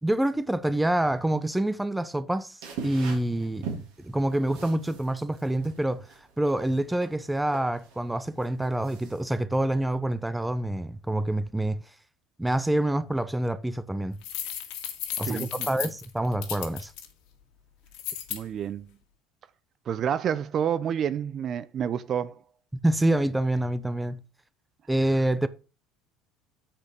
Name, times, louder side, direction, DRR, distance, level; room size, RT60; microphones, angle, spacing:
voice 1, 0.0-2.6 2.8-6.1 6.4-11.8 12.4-14.2 15.2-16.9 22.8-24.2 24.9-25.5, right 1 dB, 10° right, 0.8 m, -27 dB
sound 1, 2.6-9.4, right 5 dB, 75° right, 3.5 m, -42 dB
sound 2, 14.2-17.1 17.9-18.4, left 10 dB, 70° left, 1.8 m, -34 dB
voice 2, 15.2-15.7 18.3-18.9 19.9-22.4, right 8 dB, 45° right, 0.6 m, -29 dB
8.6 x 5.1 x 5.1 m
hypercardioid pair, 80°, 0 cm